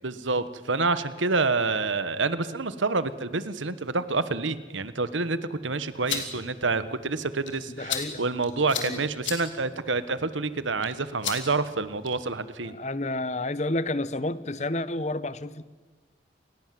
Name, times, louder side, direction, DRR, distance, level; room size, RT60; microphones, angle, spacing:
voice 1, 0.0-12.8, right 3 dB, 90° right, 14 dB, 1.3 m, -28 dB
sound 1, 5.8-12.3, left 8 dB, 90° left, 3.8 m, -38 dB
voice 2, 7.7-8.3 8.6-9.0 12.7-15.6, left 2 dB, 35° left, 16 dB, 0.9 m, -30 dB
29.0 x 20.5 x 7.7 m, 1.3 s
head